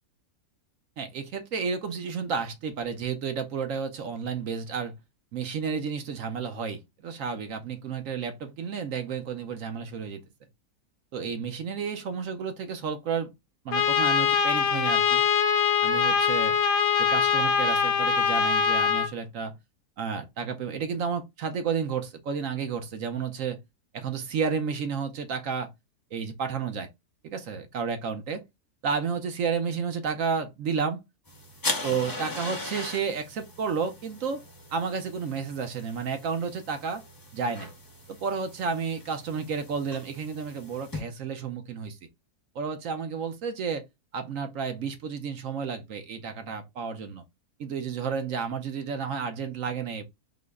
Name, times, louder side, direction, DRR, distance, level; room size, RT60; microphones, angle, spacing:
voice 1, 1.0-4.9 5.3-10.2 11.1-13.3 13.6-15.2 15.8-16.6 17.0-19.5 20.0-23.6 23.9-25.7 26.1-26.9 27.2-28.4 28.8-31.0 31.8-34.4 34.7-37.0 37.3-37.7 38.1-42.0 42.5-43.8 44.1-47.2 47.6-50.0, right 6 dB, 65° right, 1.0 m, -31 dB
Trumpet, 13.7-19.1, left 7 dB, 75° left, 1.0 m, -23 dB
sound 1, 31.3-41.0, left 2 dB, 25° left, 0.5 m, -39 dB
3.8 x 2.1 x 3.4 m
omnidirectional pair, 1.6 m